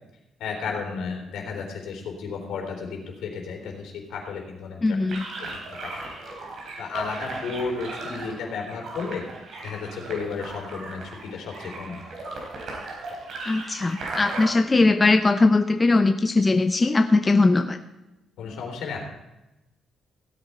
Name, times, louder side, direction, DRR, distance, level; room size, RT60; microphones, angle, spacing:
voice 1, 0.4-5.0 5.4-6.0 6.8-9.2 9.6-12.0 18.4-19.0, left 5 dB, 80° left, 1 dB, 3.6 m, -33 dB
voice 2, 4.8-5.2 13.5-17.8, left 3 dB, 25° left, 7 dB, 0.7 m, -20 dB
sound 1, 5.1-14.5, right 2 dB, 65° right, 4.3 m, -37 dB
16.5 x 8.9 x 4.4 m, 0.96 s
cardioid pair, 90°, 0 cm